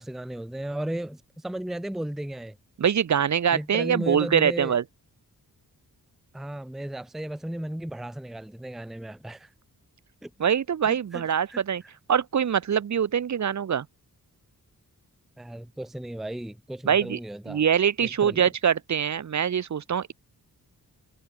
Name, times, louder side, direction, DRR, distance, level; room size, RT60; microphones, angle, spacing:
voice 1, 0.0-2.6 3.5-4.8 6.3-9.5 10.2-10.3 10.8-11.2 11.5-11.6 15.4-17.6 18.0-18.4, right 1 dB, ahead, 0.6 m, -35 dB
voice 2, 2.8-4.8 10.4-11.8 12.1-13.9 16.8-17.2 17.5-20.1, right 8 dB, 55° right, 1.0 m, -24 dB
wide cardioid pair, 165°, 35 cm